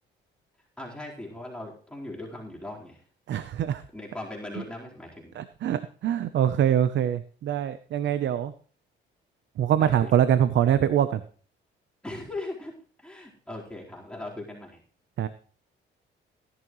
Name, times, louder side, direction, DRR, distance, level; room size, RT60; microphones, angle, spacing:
voice 1, 0.8-3.0 3.9-5.3 9.7-10.1 12.0-12.7 13.0-14.8, left 2 dB, 5° left, -4 dB, 4.2 m, -39 dB
voice 2, 3.3-3.8 5.4-8.5 9.6-11.2 15.2-15.3, right 10 dB, 65° right, 13 dB, 0.8 m, -24 dB
17.0 x 11.0 x 3.2 m, 0.44 s
cardioid pair, 90°, 20 cm